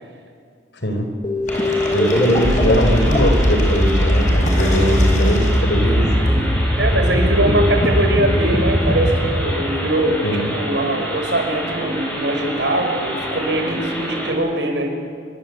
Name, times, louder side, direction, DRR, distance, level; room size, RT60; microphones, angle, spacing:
sound 1, 1.2-10.6, equal, 30° left, 2.1 m, -19 dB
Bong Hit, 1.5-6.3, left 1 dB, 45° left, 5.3 m, -30 dB
sound 2, 1.5-14.3, equal, 5° left, 7.3 m, -28 dB
voice 1, 1.9-6.1 7.1-7.7 10.2-10.5, equal, 85° left, 5 dB, 4.8 m, -20 dB
voice 2, 6.8-10.2 10.5-15.0, right 1 dB, 85° right, 4 dB, 5.0 m, -21 dB
26.0 x 23.5 x 8.1 m, 2.2 s
head